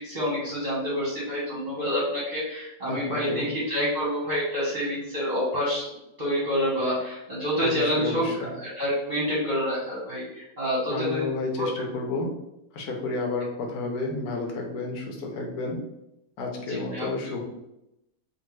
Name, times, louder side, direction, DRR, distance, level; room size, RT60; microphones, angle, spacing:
voice 1, 0.0-5.9 6.2-11.2 11.6-11.7 16.7-17.3, equal, 35° right, -7 dB, 0.9 m, -28 dB
voice 2, 2.9-3.5 7.6-8.5 10.9-12.3 12.7-15.8 16.4-17.4, left 3 dB, 90° left, 1 dB, 1.2 m, -31 dB
3.5 x 2.5 x 3.1 m, 0.86 s
omnidirectional pair, 1.6 m